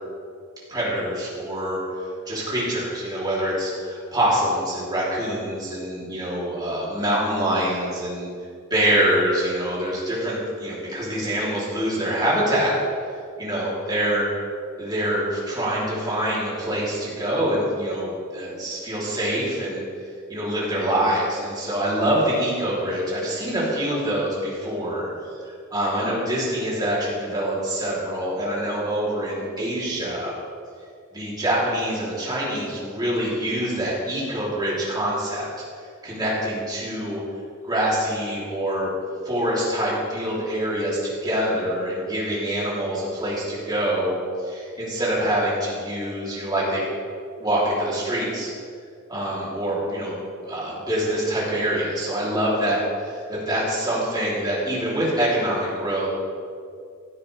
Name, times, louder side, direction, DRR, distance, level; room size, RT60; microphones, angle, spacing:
voice 1, 0.7-8.3 8.7-12.7 13.4-14.3 14.8-19.8 20.3-30.3 31.1-35.5 36.0-37.2 37.6-38.9 39.2-46.8 47.4-48.5 49.1-50.2 50.4-56.1, right 1 dB, 20° right, -7 dB, 3.4 m, -25 dB
16.0 x 9.4 x 3.5 m, 2.2 s
head